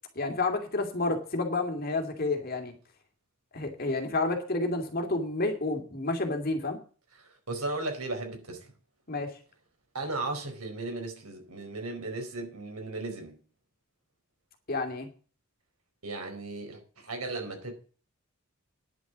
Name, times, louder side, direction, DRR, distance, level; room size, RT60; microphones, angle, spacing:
voice 1, 0.2-2.7 3.5-6.8 9.1-9.3 14.7-15.1, left 2 dB, 40° left, 2.5 m, -30 dB
voice 2, 7.1-8.7 9.9-13.4 16.0-17.7, right 2 dB, 80° right, 4.5 m, -36 dB
10.5 x 7.1 x 8.1 m
head